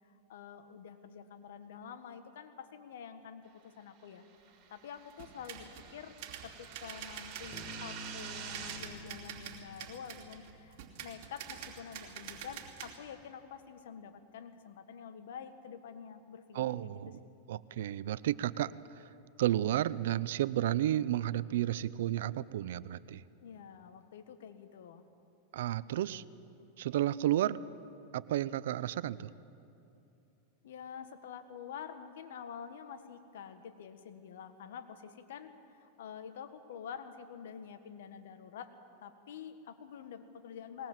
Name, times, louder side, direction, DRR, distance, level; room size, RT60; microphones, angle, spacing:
voice 1, 0.3-4.2 4.7-6.2 6.4-17.0 23.4-25.0 30.6-38.7 39.0-40.9, left 7 dB, 80° left, 9 dB, 1.5 m, -48 dB
sound 1, 4.3-8.8, right 7 dB, 40° right, 3.9 m, -47 dB
sound 2, 5.1-5.9 6.2-13.0, right 9 dB, 55° right, 2.8 m, -47 dB
Bass guitar, 7.5-11.3, equal, 10° right, 3.8 m, -51 dB
voice 2, 16.5-17.2 17.5-18.7 19.4-23.2 25.5-26.2 26.8-27.6 28.1-29.3, right 13 dB, 75° right, 18 dB, 0.6 m, -32 dB
20.5 x 19.5 x 7.5 m, 2.8 s
supercardioid pair, 135°, 0 cm